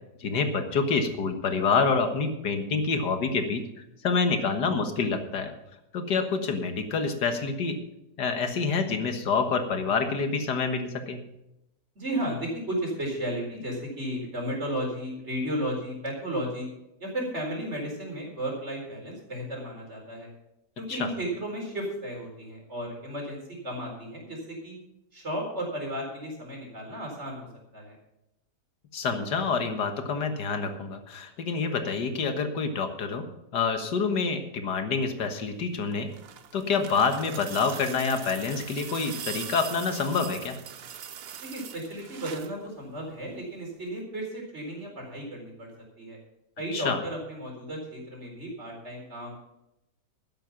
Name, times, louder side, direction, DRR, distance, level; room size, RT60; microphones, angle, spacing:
voice 1, 0.2-3.6 4.0-5.5 5.9-7.8 8.2-11.2 20.9-21.1 28.9-33.2 33.5-36.1 36.5-40.6 46.7-47.0, left 4 dB, 80° left, 7 dB, 2.1 m, -27 dB
voice 2, 11.9-16.7 17.0-20.3 20.8-24.8 25.1-27.5 27.7-28.0 41.4-45.7 46.0-46.2 46.6-49.3, right 1 dB, 40° right, 0 dB, 4.5 m, -34 dB
sound 1, 35.8-42.6 43.9-44.0, right 8 dB, 60° right, 0.6 m, -41 dB
12.5 x 10.0 x 5.8 m, 0.88 s
omnidirectional pair, 1.8 m